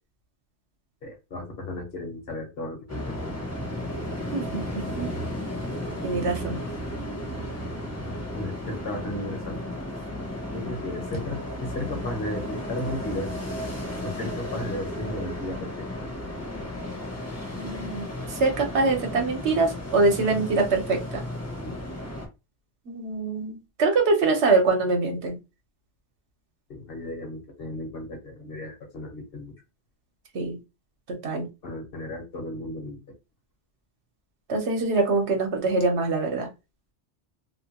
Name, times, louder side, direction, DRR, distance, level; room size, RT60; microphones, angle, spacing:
voice 1, 1.0-3.4 8.3-9.6 10.5-13.3 14.0-16.1 21.6-21.7 26.7-29.5 31.6-33.0, left 1 dB, 55° left, 3 dB, 1.1 m, -35 dB
sound 1, 2.9-22.3, left 1 dB, 15° left, 0.6 m, -34 dB
voice 2, 4.3-4.6 5.0-5.1 6.0-6.6 17.6-21.2 22.9-25.4 30.3-30.6 31.2-31.5 34.5-36.5, right 3 dB, 75° right, 3 dB, 1.1 m, -24 dB
2.9 x 2.2 x 2.8 m, 0.26 s
omnidirectional pair, 1.2 m